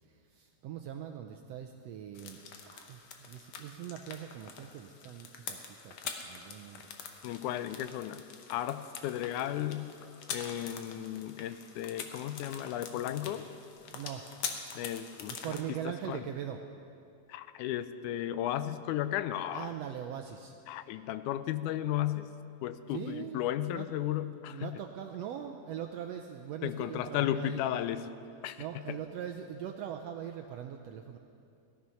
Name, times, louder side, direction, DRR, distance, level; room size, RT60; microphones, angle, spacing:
voice 1, 0.1-2.4 2.6-6.9 13.9-14.2 15.4-16.6 19.5-20.6 22.9-23.9 24.5-27.6 28.6-31.2, right 9 dB, 80° right, 5 dB, 1.5 m, -41 dB
sound 1, 2.1-15.6, left 6 dB, 65° left, 2.0 m, -45 dB
voice 2, 7.2-8.2 8.5-9.9 10.3-13.5 14.7-15.8 16.1-16.2 17.3-19.7 20.7-22.3 22.6-24.8 26.6-28.1 28.4-29.0, left 12 dB, 85° left, 12 dB, 2.0 m, -34 dB
17.5 x 12.5 x 5.7 m, 2.5 s
omnidirectional pair, 3.5 m